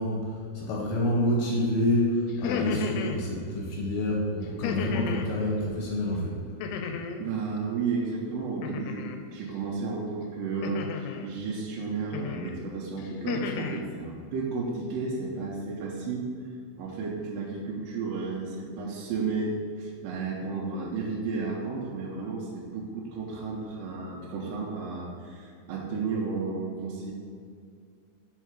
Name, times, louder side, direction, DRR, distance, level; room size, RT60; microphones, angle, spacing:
voice 1, 0.0-6.4, left 1 dB, 70° left, -2 dB, 1.9 m, -28 dB
sound 1, 2.3-3.2 4.6-5.3 6.6-7.3 8.6-9.2 10.6-11.3 12.1-12.5 13.0-13.8, left 6 dB, 85° left, 2.5 m, -33 dB
voice 2, 7.2-16.3 16.8-27.1, right 4 dB, 75° right, -4 dB, 2.2 m, -33 dB
6.5 x 4.5 x 4.6 m, 2.2 s
omnidirectional pair, 4.5 m